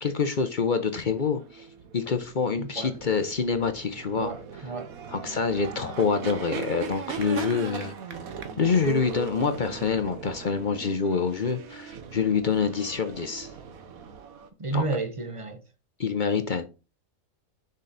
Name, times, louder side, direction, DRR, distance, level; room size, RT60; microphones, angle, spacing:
voice 1, 0.0-1.7 1.9-4.3 5.1-7.9 8.6-13.5 14.7-14.8 16.0-16.6, left 5 dB, 45° left, 0.7 m, -26 dB
sound 1, 0.9-14.5, right 7 dB, 75° right, 1.4 m, -39 dB
voice 2, 2.6-2.9 4.1-4.9 14.6-15.6, right 3 dB, 25° right, 0.9 m, -31 dB
6.5 x 5.1 x 4.0 m
omnidirectional pair, 1.5 m